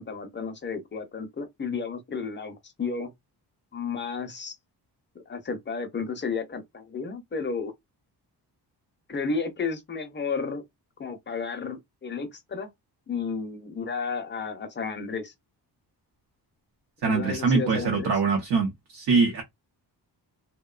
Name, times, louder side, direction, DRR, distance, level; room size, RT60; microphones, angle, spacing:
voice 1, 0.0-3.1 3.7-4.6 5.3-7.7 9.1-10.6 11.0-12.7 13.1-15.3 17.0-18.1, left 5 dB, 30° left, 0.5 m, -32 dB
voice 2, 17.0-19.4, right 4 dB, 80° right, 0.8 m, -23 dB
2.7 x 2.1 x 2.3 m
wide cardioid pair, 155°, 41 cm